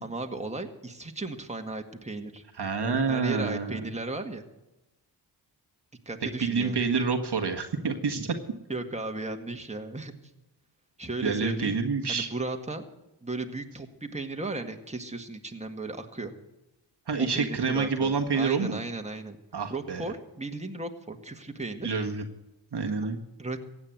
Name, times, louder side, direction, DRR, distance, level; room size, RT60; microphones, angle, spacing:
voice 1, 0.0-2.4 2.8-4.4 6.1-6.8 8.7-10.1 11.0-11.8 12.1-12.8 13.2-16.3 17.2-19.4 19.7-21.9 23.4-23.6, right 2 dB, 15° right, 4 dB, 1.9 m, -35 dB
voice 2, 2.6-3.8 6.4-8.3 11.2-12.3 17.1-18.8 19.5-20.0 21.8-22.2 22.7-23.2, right 5 dB, 55° right, 4 dB, 1.6 m, -27 dB
15.5 x 8.8 x 7.6 m, 0.97 s
cardioid pair, 50°, 48 cm